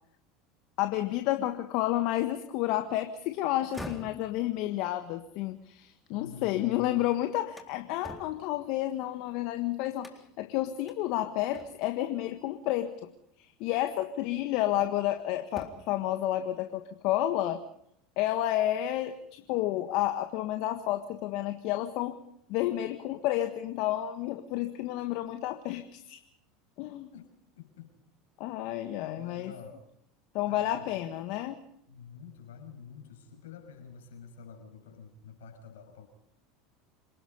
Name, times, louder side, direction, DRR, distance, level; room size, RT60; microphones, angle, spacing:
voice 1, 0.8-13.1 13.4-17.6 18.2-22.2 22.5-26.2 26.8-27.1 28.4-29.5 30.3-31.6, left 14 dB, 60° left, 8 dB, 1.5 m, -30 dB
sound 1, 3.6-6.7 7.1-9.4 10.0-10.5 10.9-11.0 11.5-12.0 13.3-13.4 14.0-15.1 15.4-16.0, left 1 dB, 5° left, 3.8 m, -48 dB
voice 2, 6.1-6.9 27.1-27.3 27.6-27.9 29.2-29.9 30.4-31.0 31.9-36.1, left 6 dB, 80° left, 5 dB, 6.1 m, -47 dB
27.5 x 19.0 x 5.4 m, 0.74 s
hypercardioid pair, 85°, 0 cm